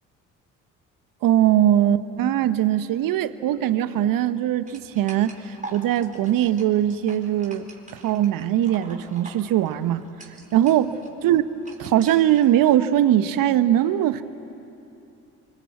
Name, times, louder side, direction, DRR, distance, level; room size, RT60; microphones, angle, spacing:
voice 1, 1.2-7.6 7.9-10.0 10.5-10.9 11.2-11.4 11.8-14.2, right 11 dB, 60° right, 13 dB, 1.1 m, -21 dB
sound 1, 4.7-12.5, right 2 dB, 20° right, 4.3 m, -44 dB
27.0 x 25.0 x 8.2 m, 2.8 s
hypercardioid pair, 50°, 38 cm